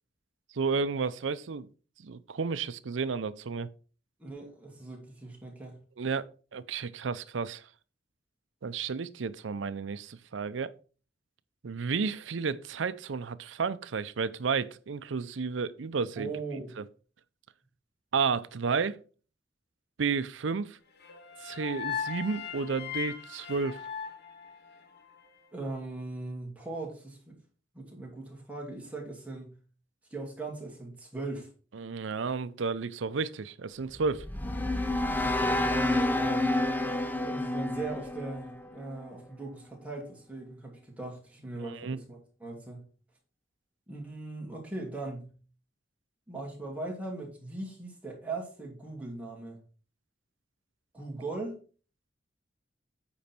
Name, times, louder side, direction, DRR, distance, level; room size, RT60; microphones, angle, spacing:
voice 1, 0.5-1.7 2.0-3.7 6.0-7.6 8.6-10.7 11.6-16.3 16.8-16.9 18.1-19.0 20.0-20.8 21.4-23.8 31.7-34.2 41.6-42.0, right 5 dB, 90° right, 0.6 m, -32 dB
voice 2, 4.2-5.8 16.2-16.7 25.5-27.3 27.7-29.5 30.1-31.5 35.4-36.5 37.2-42.8 43.9-45.3 46.3-49.6 50.9-51.6, right 3 dB, 10° right, 2.6 m, -39 dB
sound 1, 21.0-25.2, left 8 dB, 60° left, 1.4 m, -38 dB
sound 2, 33.9-39.1, left 1 dB, 10° left, 0.6 m, -29 dB
8.6 x 5.1 x 4.4 m
head